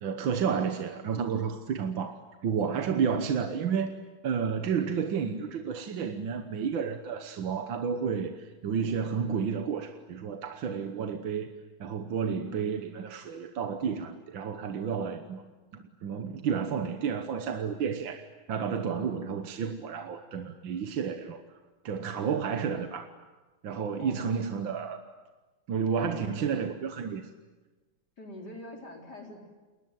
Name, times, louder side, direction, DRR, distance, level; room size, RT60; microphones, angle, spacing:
voice 1, 0.0-3.9 4.2-11.5 11.8-15.4 15.7-21.4 21.8-23.1 23.6-25.0 25.7-27.3, right 6 dB, 75° right, 7 dB, 1.9 m, -31 dB
voice 2, 23.9-24.5 28.2-29.4, left 1 dB, 55° left, 2 dB, 4.8 m, -44 dB
29.5 x 21.5 x 9.2 m, 1.2 s
omnidirectional pair, 2.2 m